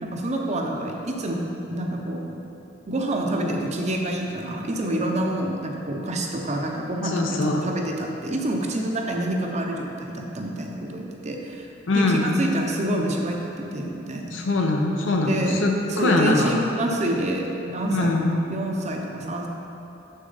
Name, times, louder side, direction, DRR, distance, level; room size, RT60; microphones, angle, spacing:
voice 1, 0.0-2.4 2.9-14.4 15.2-15.6 15.9-18.1 18.5-19.5, right 1 dB, 35° right, 1 dB, 0.7 m, -27 dB
voice 2, 7.0-7.6 11.9-12.3 14.3-16.7 17.9-18.3, left 2 dB, 80° left, 1 dB, 0.8 m, -22 dB
6.6 x 6.3 x 4.0 m, 2.9 s
head